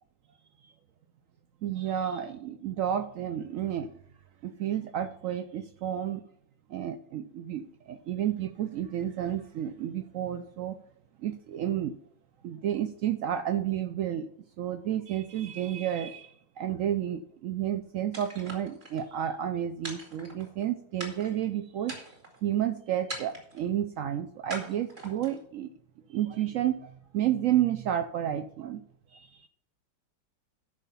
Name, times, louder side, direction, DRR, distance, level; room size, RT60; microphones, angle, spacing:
voice 1, 1.6-3.9 4.4-6.2 6.7-10.8 11.2-11.9 12.4-14.3 14.6-22.0 22.4-25.7 26.1-28.8 29.1-29.5, right 10 dB, 90° right, 10 dB, 0.7 m, -31 dB
sound 1, 18.1-19.0 19.8-20.6 21.0-21.4 21.8-22.4 23.1-23.7 24.5-25.4, right 1 dB, 35° right, 2.4 m, -41 dB
12.0 x 4.9 x 5.5 m, 0.67 s
omnidirectional pair, 2.0 m